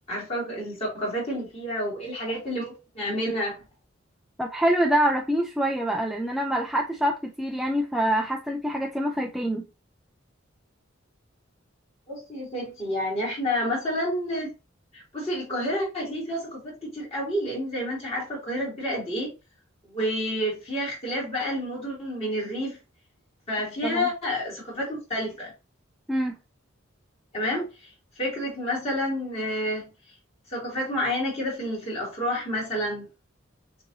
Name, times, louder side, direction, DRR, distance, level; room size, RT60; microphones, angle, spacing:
voice 1, 0.0-3.5 12.1-14.5 14.9-19.3 19.8-22.8 23.5-25.5 27.3-27.9 28.1-29.9 30.5-33.1, equal, 30° left, 3.0 m, -29 dB
voice 2, 4.4-9.6 23.8-24.1 26.1-26.4, right 1 dB, ahead, 0.4 m, -25 dB
6.6 x 2.9 x 2.7 m
head